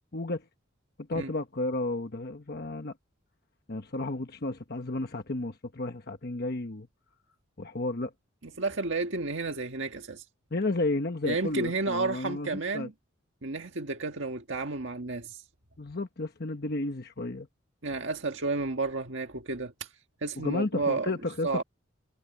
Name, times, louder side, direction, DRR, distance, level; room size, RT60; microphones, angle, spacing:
voice 1, 0.1-0.4 1.1-2.9 3.7-6.9 7.6-8.1 10.5-12.9 15.8-17.5 20.4-21.6, left 2 dB, 50° left, 1.1 m, -32 dB
voice 2, 8.6-10.2 11.2-12.9 13.4-15.4 17.8-19.9 20.2-21.1 21.4-21.6, right 3 dB, 65° right, 1.8 m, -31 dB
head